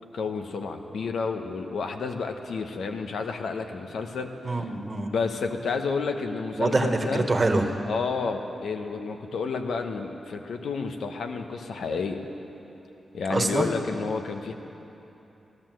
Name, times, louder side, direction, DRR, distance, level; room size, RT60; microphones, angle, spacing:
voice 1, 0.1-4.3 5.1-7.3 7.9-12.2 13.1-14.5, left 4 dB, 80° left, 5 dB, 1.0 m, -30 dB
voice 2, 4.4-5.1 6.6-7.7 13.3-13.7, right 2 dB, 30° right, 4 dB, 1.4 m, -24 dB
16.0 x 11.5 x 7.7 m, 3.0 s
cardioid pair, 80°, 0 cm